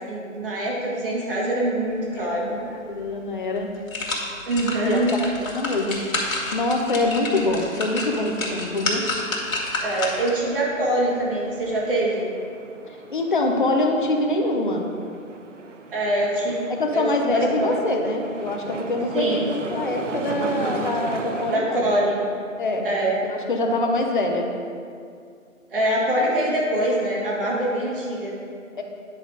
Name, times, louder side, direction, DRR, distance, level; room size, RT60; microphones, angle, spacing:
voice 1, 0.1-2.6 4.5-5.1 9.8-12.3 15.9-17.8 19.1-19.5 21.5-22.2 22.8-23.1 25.7-28.3, right 1 dB, 40° right, -4 dB, 1.7 m, -24 dB
voice 2, 2.2-3.7 4.8-6.1 6.5-9.1 12.9-14.9 16.7-21.9 22.6-22.9 23.2-24.5 28.8-28.9, left 2 dB, 40° left, 2 dB, 0.7 m, -25 dB
sound 1, 3.0-3.1 3.6-10.4 10.9-11.0, left 2 dB, 80° left, 2.0 m, -29 dB
sound 2, 7.3-21.6, right 4 dB, 60° right, 0.7 m, -37 dB
9.5 x 4.0 x 4.8 m, 2.3 s
hypercardioid pair, 165°, 40 cm